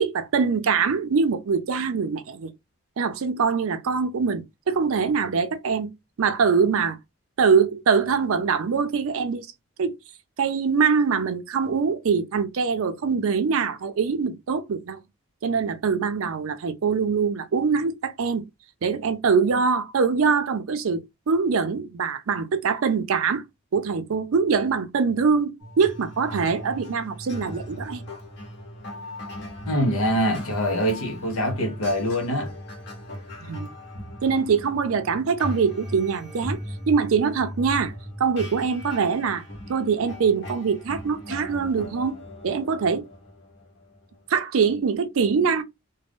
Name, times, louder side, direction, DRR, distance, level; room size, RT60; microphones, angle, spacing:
voice 1, 0.0-2.5 3.0-7.0 7.4-9.5 9.8-9.9 10.4-15.0 15.4-18.5 18.8-23.4 23.7-28.0 33.5-33.7 34.2-36.6 36.9-37.9 38.2-39.4 39.7-43.0 44.3-45.6, right 5 dB, 75° right, 0.4 m, -23 dB
sound 1, 25.6-44.4, left 1 dB, 50° left, 1.0 m, -38 dB
voice 2, 29.7-32.5, equal, 75° left, 0.8 m, -24 dB
2.5 x 2.1 x 3.5 m
head